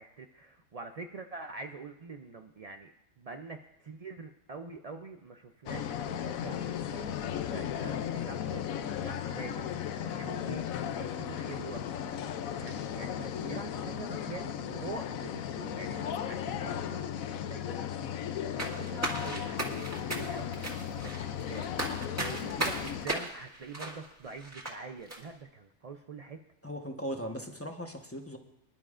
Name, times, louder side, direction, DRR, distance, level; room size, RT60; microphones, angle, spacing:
voice 1, 0.0-11.8 12.6-17.8 18.6-26.4, right 4 dB, 75° right, 4 dB, 0.3 m, -45 dB
sound 1, 5.7-23.1, left 9 dB, 80° left, 1.0 m, -36 dB
sound 2, 18.6-24.8 25.1-25.2, right 1 dB, 10° right, 1.7 m, -36 dB
voice 2, 26.6-28.4, equal, 10° left, 3 dB, 0.9 m, -38 dB
24.0 x 11.5 x 2.5 m, 0.84 s
omnidirectional pair, 1.4 m